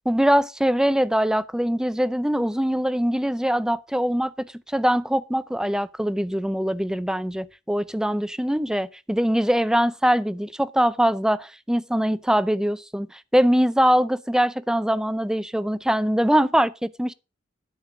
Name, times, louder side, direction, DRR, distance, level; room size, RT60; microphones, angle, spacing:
voice 1, 0.1-17.1, equal, 5° right, 0.5 m, -22 dB
12.5 x 5.4 x 6.0 m
head